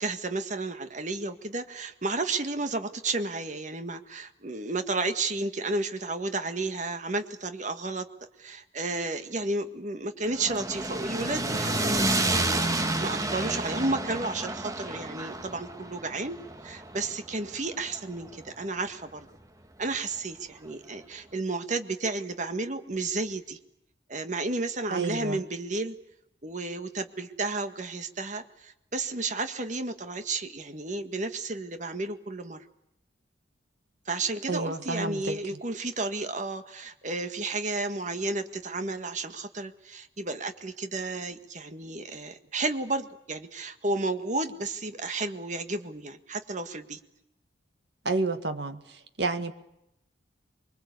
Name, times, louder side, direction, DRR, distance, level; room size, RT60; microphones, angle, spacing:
voice 1, 0.0-8.1 8.4-16.4 16.6-19.3 19.8-23.6 24.1-26.0 26.4-32.6 34.0-47.0, right 3 dB, 40° right, 7 dB, 1.7 m, -32 dB
sound 1, 10.2-18.5, right 2 dB, 20° right, 1.6 m, -30 dB
voice 2, 24.9-25.4 34.5-35.4 48.1-48.8 49.2-49.5, right 3 dB, 65° right, 8 dB, 2.0 m, -29 dB
24.5 x 24.0 x 8.4 m, 0.83 s
head